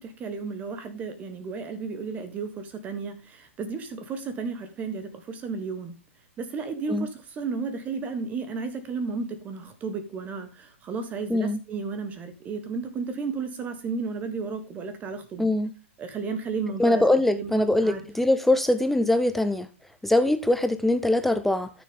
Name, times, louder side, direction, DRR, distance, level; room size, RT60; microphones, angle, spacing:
voice 1, 0.0-6.0 6.4-15.5 16.0-17.0 17.3-18.0, right 4 dB, 20° right, 9 dB, 1.3 m, -33 dB
voice 2, 15.4-15.7 16.8-19.7 20.0-21.7, left 1 dB, 5° left, 11 dB, 0.5 m, -22 dB
13.0 x 6.8 x 3.7 m, 0.30 s
figure-of-eight pair, 115°, 7 cm